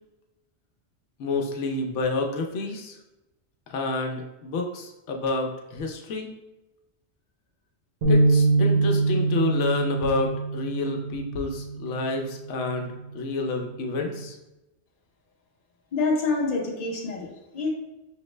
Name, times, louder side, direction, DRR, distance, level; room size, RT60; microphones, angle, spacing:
voice 1, 1.2-3.0 3.7-6.3 8.1-14.4, left 3 dB, 85° left, 3 dB, 0.9 m, -29 dB
sound 1, 8.0-12.3 12.8-13.0 13.8-14.3, right 3 dB, 80° right, 1.2 m, -24 dB
voice 2, 15.9-17.7, left 3 dB, 40° left, -1 dB, 0.7 m, -27 dB
5.6 x 2.0 x 3.1 m, 1.0 s
omnidirectional pair, 1.2 m